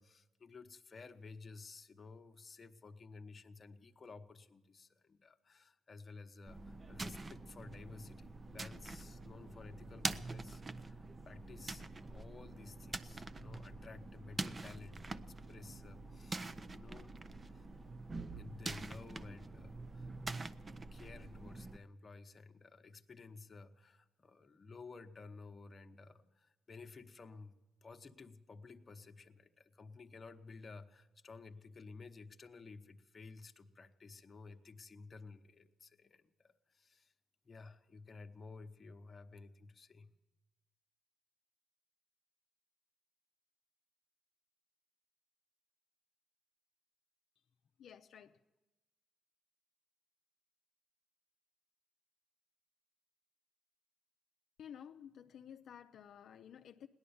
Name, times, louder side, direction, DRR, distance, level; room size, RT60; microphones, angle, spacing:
voice 1, 0.0-15.2 15.5-17.1 17.5-17.7 18.3-27.6 27.8-37.1 37.4-40.1, left 4 dB, 35° left, 7 dB, 0.9 m, -54 dB
sound 1, 6.5-21.8, right 3 dB, 30° right, 0.5 m, -45 dB
voice 2, 47.8-48.4 54.6-56.9, left 8 dB, 65° left, 6 dB, 0.5 m, -53 dB
17.0 x 11.0 x 7.1 m, 1.1 s
cardioid pair, 90°, 0 cm